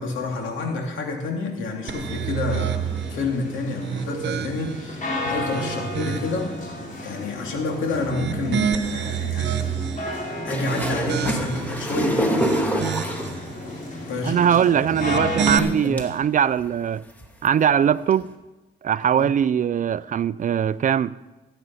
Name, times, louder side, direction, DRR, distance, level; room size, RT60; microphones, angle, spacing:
voice 1, 0.0-6.5 7.0-9.7 10.4-12.4 14.1-14.6 15.5-15.9 19.1-19.2, left 3 dB, 75° left, 3.0 m, -29 dB
sound 1, 1.8-15.5, left 1 dB, 40° left, 4.4 m, -33 dB
sound 2, 1.9-3.2 3.7-4.9 5.4-6.5 8.0-10.1 10.6-11.7 12.2-13.3 14.8-15.6, right 8 dB, 65° right, 1.0 m, -28 dB
sound 3, 10.5-13.5 14.4-14.5 15.5-16.0 16.6-16.7 17.1-17.5 18.2-18.3, equal, 10° left, 2.2 m, -26 dB
voice 2, 14.2-17.0 17.4-18.3 18.8-21.2, right 8 dB, 40° right, 0.4 m, -21 dB
15.5 x 9.1 x 5.6 m
cardioid pair, 90°, 20 cm